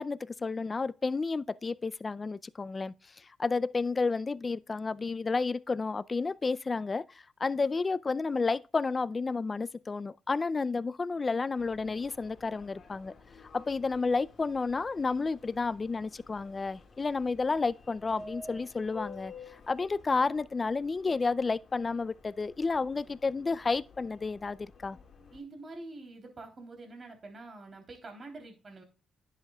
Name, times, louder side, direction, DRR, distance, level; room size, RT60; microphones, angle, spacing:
voice 1, 0.0-2.9 3.4-7.0 7.4-13.1 13.5-19.3 19.7-25.0, left 4 dB, 30° left, 0.4 m, -31 dB
Subway metro underground, 11.6-25.4, left 3 dB, 50° left, 2.0 m, -52 dB
voice 2, 25.3-28.8, right 2 dB, 40° right, 3.3 m, -46 dB
10.5 x 7.6 x 2.3 m
cardioid pair, 90°, 0 cm